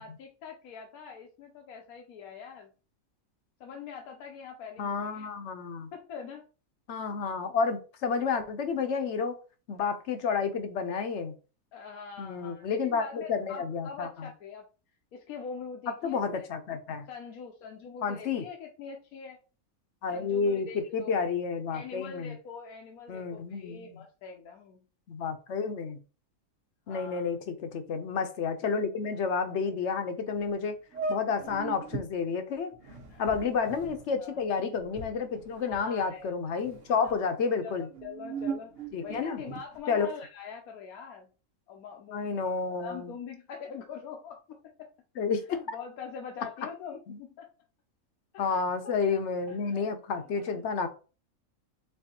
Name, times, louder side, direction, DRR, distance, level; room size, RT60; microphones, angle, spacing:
voice 1, 0.0-2.7 3.6-5.3 5.9-6.5 11.7-14.6 15.1-16.5 17.1-19.4 20.1-21.2 21.7-24.8 26.9-27.3 33.1-33.3 34.2-34.4 35.6-36.3 36.9-37.1 37.6-41.3 41.7-42.5 42.8-44.6 45.5-47.5 48.3-49.8 50.2-50.6, left 6 dB, 85° left, 2 dB, 1.2 m, -44 dB
voice 2, 4.8-5.9 6.9-9.4 9.7-11.3 12.2-14.3 15.9-17.1 18.0-18.5 20.0-22.3 23.1-23.9 25.1-26.0 26.9-30.8 31.1-32.7 33.2-37.9 38.9-39.4 39.9-40.1 42.1-43.1 45.2-45.4 47.1-47.2 48.4-50.9, left 5 dB, 60° left, 8 dB, 0.9 m, -30 dB
sound 1, 30.4-30.5 30.9-32.1 32.7-36.2 36.5-37.2 37.8-39.8, right 4 dB, 60° right, 1.2 m, -39 dB
4.4 x 4.0 x 2.8 m, 0.35 s
omnidirectional pair, 1.5 m